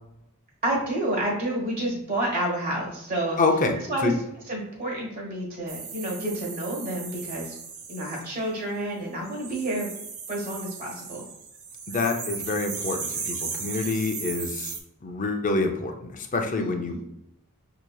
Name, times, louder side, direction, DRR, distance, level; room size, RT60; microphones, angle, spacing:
voice 1, 0.6-3.4 3.9-4.1 4.5-7.5 7.9-9.9 10.3-11.2 16.6-17.0, right 1 dB, 40° right, -3 dB, 1.3 m, -29 dB
voice 2, 3.4-4.1 11.9-14.7 15.0-17.1, left 3 dB, 35° left, 4 dB, 0.5 m, -27 dB
sound 1, 5.7-8.2 9.2-14.8, right 5 dB, 70° right, 0.7 m, -36 dB
6.2 x 2.8 x 2.3 m, 0.83 s
head